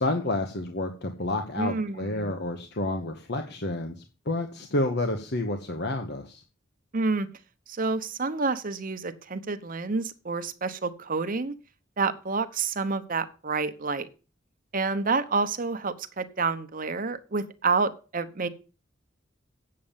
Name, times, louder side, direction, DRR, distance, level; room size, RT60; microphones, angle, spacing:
voice 1, 0.0-6.4, left 2 dB, 60° left, 5 dB, 1.3 m, -29 dB
voice 2, 1.6-2.3 6.9-7.3 7.7-11.6 12.0-14.1 14.7-18.5, right 4 dB, 45° right, 11 dB, 1.0 m, -28 dB
8.8 x 7.6 x 7.3 m, 0.34 s
head